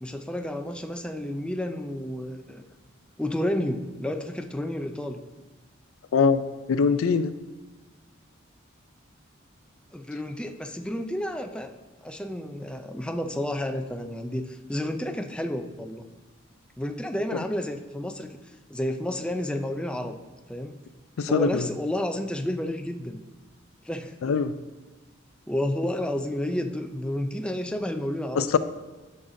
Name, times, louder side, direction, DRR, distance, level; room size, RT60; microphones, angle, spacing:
voice 1, 0.0-2.6 3.2-5.2 9.9-11.7 12.0-16.1 16.8-20.2 20.5-20.8 21.3-23.2 23.8-24.2 25.5-28.5, left 1 dB, 5° left, 5 dB, 0.4 m, -31 dB
voice 2, 6.1-6.4 6.7-7.3 21.2-21.7 24.2-24.5 28.4-28.6, left 5 dB, 85° left, 12 dB, 0.4 m, -22 dB
11.0 x 6.5 x 2.6 m, 1.2 s
head